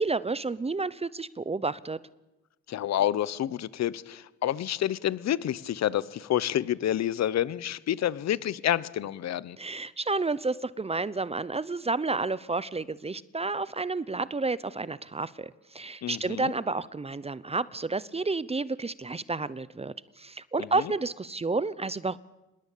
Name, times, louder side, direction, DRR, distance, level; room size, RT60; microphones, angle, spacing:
voice 1, 0.0-2.0 9.6-22.2, right 3 dB, 20° right, 18 dB, 0.8 m, -30 dB
voice 2, 2.7-9.6 16.0-16.5, left 11 dB, 60° left, 19 dB, 1.0 m, -28 dB
26.5 x 21.0 x 8.5 m, 0.98 s
cardioid pair, 90°, 30 cm